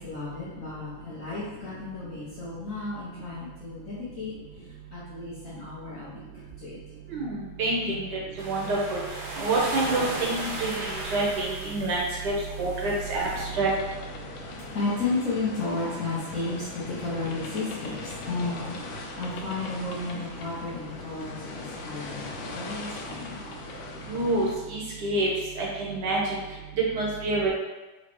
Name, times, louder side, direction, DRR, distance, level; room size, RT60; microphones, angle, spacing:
voice 1, 0.0-6.8 7.8-8.0 14.2-23.8, left 3 dB, 55° left, -8 dB, 0.9 m, -34 dB
voice 2, 7.6-8.2 8.4-9.0 9.4-12.0 12.2-12.3 12.6-13.3 13.5-13.7 24.1-25.3 25.6-26.4 26.9-27.5, right 2 dB, 65° right, -4 dB, 1.4 m, -27 dB
sound 1, 8.4-13.4, right 2 dB, 85° right, 1.5 m, -36 dB
sound 2, 13.2-24.5, left 3 dB, 85° left, 1.4 m, -40 dB
3.9 x 3.2 x 3.0 m, 1.1 s
omnidirectional pair, 2.1 m